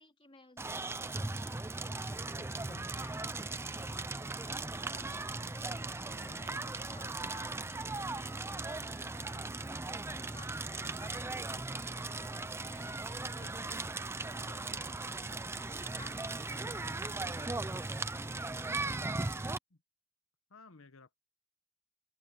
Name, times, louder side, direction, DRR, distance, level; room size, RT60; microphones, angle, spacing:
voice 1, 0.0-19.6, left 2 dB, 25° left, 3.7 m, -58 dB
Crackle, 0.6-19.6, right 3 dB, 10° right, 0.5 m, -38 dB
voice 2, 2.4-2.9 6.1-6.5 9.1-9.6 10.8-11.1 13.4-13.7 16.7-17.0 19.7-19.8 20.5-21.2, left 3 dB, 70° left, 1.2 m, -56 dB
open air
head